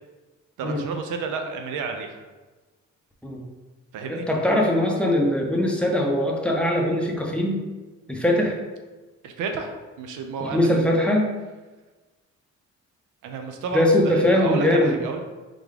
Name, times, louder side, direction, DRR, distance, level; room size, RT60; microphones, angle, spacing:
voice 1, 0.6-2.2 3.9-4.2 9.2-10.7 13.2-15.2, right 4 dB, 85° right, 5 dB, 0.6 m, -31 dB
voice 2, 4.1-7.6 8.1-8.6 10.4-11.3 13.7-14.9, left 1 dB, 5° left, -1 dB, 0.7 m, -21 dB
3.8 x 3.5 x 3.3 m, 1.2 s
cardioid pair, 90°, 30 cm